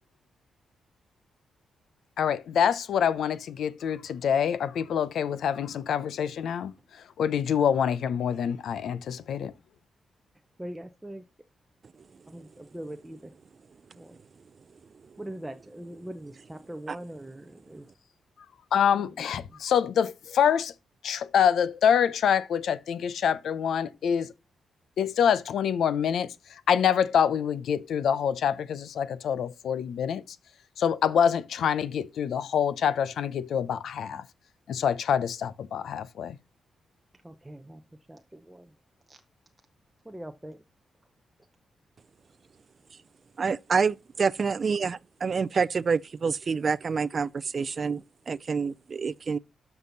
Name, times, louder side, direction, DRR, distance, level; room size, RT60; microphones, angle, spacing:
voice 1, 2.2-9.5 18.7-20.7 21.0-24.3 25.0-30.4 30.8-34.2 34.7-36.4, left 8 dB, 70° left, 0.8 m, -26 dB
voice 2, 10.6-11.2 12.3-13.2 14.0-14.2 15.2-17.8 37.2-37.8 38.1-38.7 39.1-39.2 40.1-40.6, right 1 dB, 5° right, 0.7 m, -41 dB
voice 3, 43.4-49.4, right 5 dB, 35° right, 0.4 m, -27 dB
12.5 x 5.9 x 4.0 m
wide cardioid pair, 145°, 0 cm